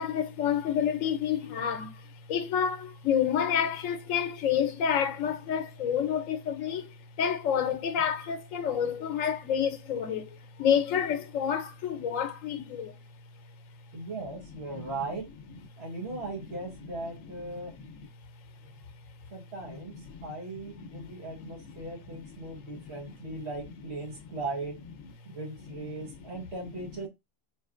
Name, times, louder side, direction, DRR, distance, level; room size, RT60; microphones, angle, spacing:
voice 1, 0.0-2.0 2.3-6.9 7.2-13.0 14.7-14.9 17.8-17.9 20.1-20.3 20.8-21.1 21.4-21.5 22.7-23.0, left 8 dB, 90° left, 1.0 m, -29 dB
voice 2, 13.9-15.3 15.8-17.7 19.3-24.8 25.2-27.1, right 2 dB, 55° right, 1.4 m, -38 dB
4.4 x 3.1 x 2.4 m
omnidirectional pair, 1.3 m